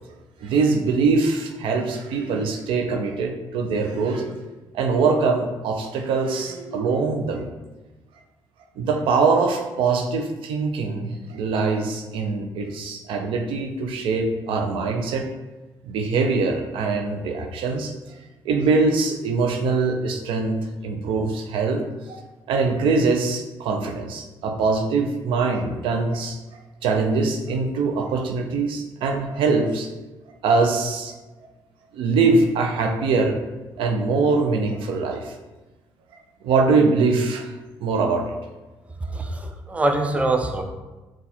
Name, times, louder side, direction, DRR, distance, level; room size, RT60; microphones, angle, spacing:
voice 1, 0.4-4.4 4.7-7.5 8.8-15.3 15.8-17.9 18.4-22.2 22.5-29.9 30.4-31.1 31.9-33.4 33.8-35.3 36.4-37.5 37.8-38.3, right 4 dB, 80° right, 4 dB, 0.5 m, -23 dB
voice 2, 39.1-40.6, right 2 dB, 15° right, 4 dB, 0.5 m, -23 dB
4.2 x 2.4 x 4.1 m, 1.1 s
cardioid pair, 85°, 9 cm